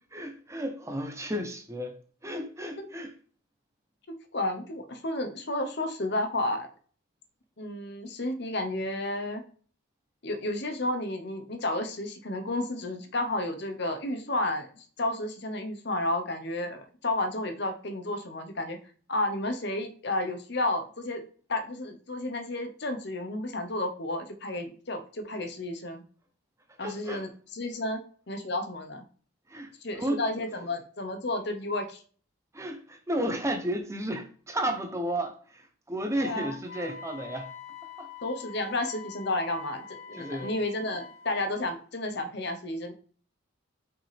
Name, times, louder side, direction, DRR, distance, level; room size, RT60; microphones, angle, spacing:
voice 1, 0.1-2.0 2.2-3.1 26.8-27.2 29.5-30.2 32.5-37.5 38.0-38.1 40.1-40.5, right 1 dB, 15° right, 0.8 m, -33 dB
voice 2, 4.3-6.7 7.6-9.4 10.2-18.8 19.1-21.2 21.5-26.0 26.8-28.0 28.3-29.0 29.8-32.0 36.2-36.6 38.2-42.9, left 2 dB, 55° left, 1.0 m, -32 dB
Wind instrument woodwind instrument, 36.6-41.5, left 7 dB, 90° left, 2.1 m, -45 dB
5.9 x 5.2 x 3.4 m
head